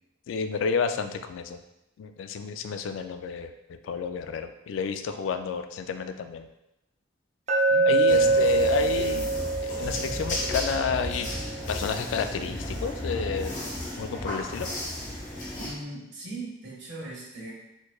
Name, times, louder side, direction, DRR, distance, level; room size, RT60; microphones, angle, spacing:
voice 1, 0.3-1.6 2.0-6.5 7.9-9.3 9.6-11.3 11.7-13.5 14.0-14.7, left 6 dB, 90° left, 9 dB, 0.3 m, -30 dB
Glass, 7.5-11.6, right 3 dB, 35° right, 0.4 m, -25 dB
voice 2, 7.7-8.9 15.6-17.5, right 2 dB, 65° right, -5 dB, 1.4 m, -40 dB
sound 1, 8.1-15.7, left 1 dB, 40° left, 0.9 m, -34 dB
4.2 x 3.0 x 2.3 m, 0.89 s
head